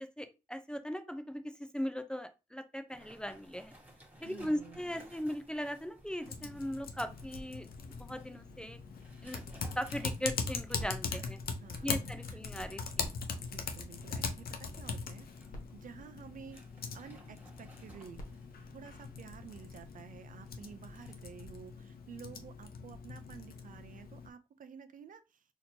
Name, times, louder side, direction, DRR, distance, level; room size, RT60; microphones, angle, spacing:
voice 1, 0.0-3.7 4.2-8.8 9.2-9.4 9.8-11.4 11.8-13.1, equal, 5° left, 0.5 m, -39 dB
sound 1, 2.9-21.1, right 1 dB, 10° right, 1.5 m, -59 dB
voice 2, 4.2-4.9 11.1-11.3 11.6-12.4 13.4-15.3 15.7-16.6 16.9-18.2 18.7-25.4, right 7 dB, 60° right, 0.5 m, -51 dB
Typing, 6.3-24.3, left 5 dB, 80° left, 0.6 m, -41 dB
sound 2, 10.8-12.4 12.9-14.5 15.2-15.3 15.5-17.1 17.9-19.7 20.4-20.5, equal, 65° left, 1.2 m, -53 dB
4.2 x 2.9 x 2.7 m
cardioid pair, 90°, 15 cm